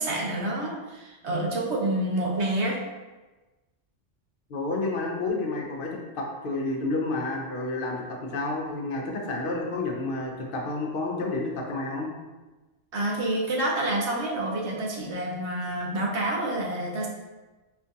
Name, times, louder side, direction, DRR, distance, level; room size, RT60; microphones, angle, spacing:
voice 1, 0.0-2.8 12.9-17.1, right 1 dB, 70° right, -1 dB, 0.9 m, -28 dB
voice 2, 4.5-12.1, left 2 dB, 55° left, 0 dB, 0.8 m, -30 dB
4.4 x 2.3 x 2.7 m, 1.2 s
omnidirectional pair, 1.2 m